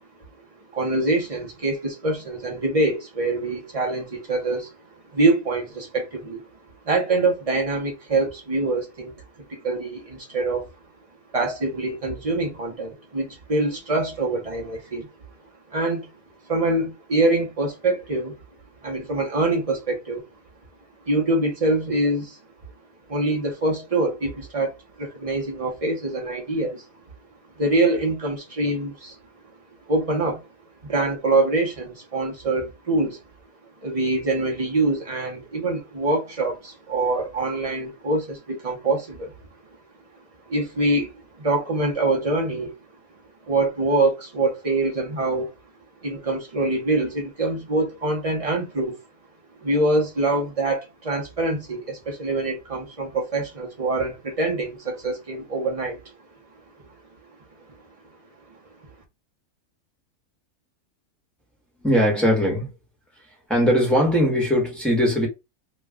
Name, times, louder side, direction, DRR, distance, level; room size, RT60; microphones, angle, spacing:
voice 1, 0.7-4.7 5.1-6.4 6.9-9.1 9.5-10.7 11.3-15.1 15.7-16.1 16.5-18.4 18.8-20.2 21.0-22.4 23.1-26.9 27.6-29.2 29.9-30.4 30.8-33.2 33.8-39.3 40.5-42.7 43.5-45.5 46.0-49.0 49.6-56.0, right 2 dB, 30° right, 0.7 m, -24 dB
voice 2, 61.8-62.7 63.5-65.3, equal, ahead, 1.1 m, -20 dB
3.1 x 2.2 x 3.5 m
omnidirectional pair, 1.6 m